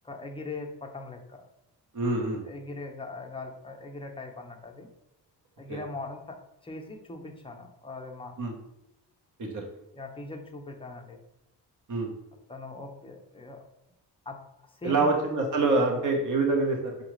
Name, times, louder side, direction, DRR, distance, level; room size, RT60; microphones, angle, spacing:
voice 1, 0.0-1.4 2.4-4.9 5.6-6.4 6.6-8.4 9.9-11.2 12.5-13.7 14.3-14.4 14.7-15.1, left 2 dB, 15° left, 2 dB, 0.7 m, -40 dB
voice 2, 1.9-2.4 5.7-5.8 8.4-8.5 9.4-9.6 11.9-12.1 14.8-17.0, right 3 dB, 45° right, 1 dB, 1.0 m, -26 dB
4.8 x 2.4 x 3.1 m, 0.87 s
cardioid pair, 65°, 42 cm